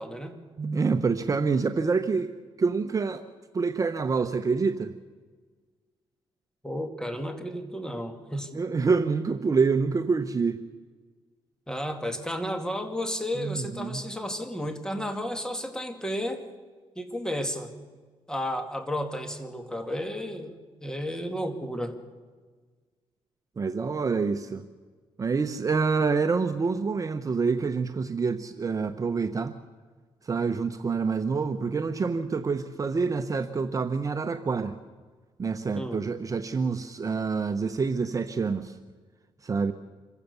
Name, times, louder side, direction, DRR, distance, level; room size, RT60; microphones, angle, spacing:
voice 1, 0.0-0.4 6.6-8.5 11.7-16.5 17.0-17.7 18.3-22.0 35.7-36.0, equal, 5° left, 6 dB, 2.4 m, -32 dB
voice 2, 0.6-2.3 2.6-3.2 3.5-4.9 8.5-10.6 13.4-14.0 23.6-24.6 25.2-29.5 30.3-34.7 35.4-38.7 39.4-39.7, right 4 dB, 35° right, 9 dB, 0.9 m, -27 dB
26.5 x 15.5 x 7.0 m, 1.5 s
cardioid pair, 95°, 10 cm